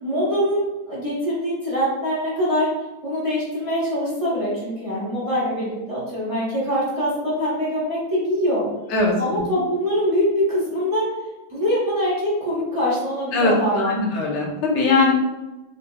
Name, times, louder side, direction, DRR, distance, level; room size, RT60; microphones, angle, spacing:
voice 1, 0.0-2.7 3.0-8.7 9.2-11.1 11.5-14.0, equal, 25° right, -8 dB, 1.0 m, -23 dB
voice 2, 8.9-9.4 13.3-15.1, left 3 dB, 90° left, -2 dB, 1.5 m, -20 dB
4.5 x 2.9 x 2.2 m, 1.1 s
omnidirectional pair, 1.8 m